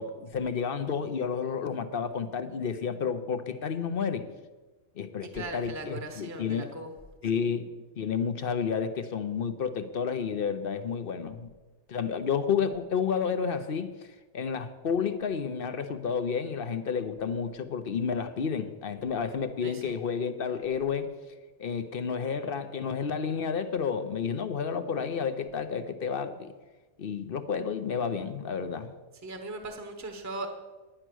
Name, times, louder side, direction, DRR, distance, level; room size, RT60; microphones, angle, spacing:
voice 1, 0.0-4.3 5.0-6.7 7.2-11.5 11.9-13.9 14.3-21.1 21.6-26.5 27.0-28.9, left 6 dB, 50° left, 10 dB, 0.9 m, -31 dB
voice 2, 5.2-6.9 7.3-7.5 19.6-20.0 29.2-30.5, right 2 dB, 15° right, 5 dB, 1.0 m, -39 dB
10.0 x 10.0 x 6.2 m, 1.2 s
omnidirectional pair, 1.3 m